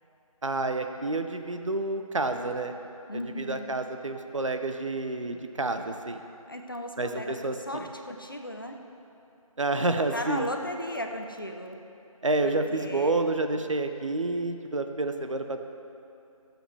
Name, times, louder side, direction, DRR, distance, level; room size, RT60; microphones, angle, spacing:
voice 1, 0.4-2.7 3.4-6.2 7.0-7.6 9.6-10.5 12.2-15.6, right 2 dB, 55° right, 6 dB, 0.8 m, -29 dB
voice 2, 3.1-3.7 6.5-8.8 10.1-11.8 12.4-13.2, left 1 dB, 35° left, 4 dB, 0.8 m, -36 dB
23.0 x 7.9 x 3.3 m, 2.7 s
figure-of-eight pair, 180°, 19 cm